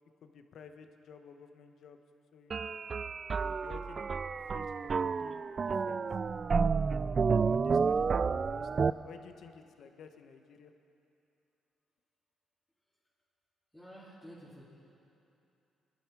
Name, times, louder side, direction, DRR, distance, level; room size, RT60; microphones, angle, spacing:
voice 1, 0.2-2.0 2.3-2.7 3.4-6.0 6.5-8.7 9.0-10.7, left 6 dB, 65° left, 7 dB, 1.1 m, -53 dB
sound 1, 2.5-8.9, right 5 dB, 40° right, 0.3 m, -30 dB
voice 2, 13.7-14.6, equal, 5° left, -10 dB, 3.5 m, -50 dB
23.0 x 11.5 x 4.9 m, 2.8 s
cardioid pair, 90°, 0 cm